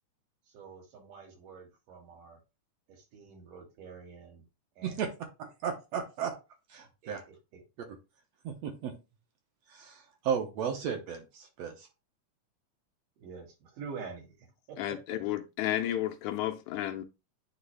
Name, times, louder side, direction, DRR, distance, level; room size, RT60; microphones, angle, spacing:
voice 1, 0.5-2.4 2.9-4.4 4.8-5.1 7.0-7.6 13.2-15.2, right 5 dB, 85° right, 3.5 m, -47 dB
voice 2, 5.4-6.3 6.7-7.2 8.4-8.9 9.7-11.9, right 7 dB, 70° right, 1.7 m, -34 dB
voice 3, 14.8-17.0, left 13 dB, 80° left, 1.9 m, -32 dB
9.6 x 3.2 x 3.3 m
omnidirectional pair, 3.7 m